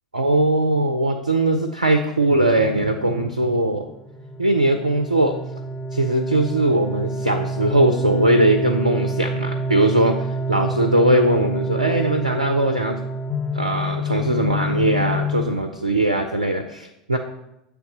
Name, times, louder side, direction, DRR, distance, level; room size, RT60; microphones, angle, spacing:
voice 1, 0.1-3.9 4.4-5.4 5.9-13.0 13.5-17.2, right 1 dB, 85° right, 5 dB, 0.5 m, -20 dB
sound 1, 2.5-15.5, equal, 20° left, 0.7 m, -27 dB
8.1 x 3.4 x 4.9 m, 0.87 s
figure-of-eight pair, 80°, 4 cm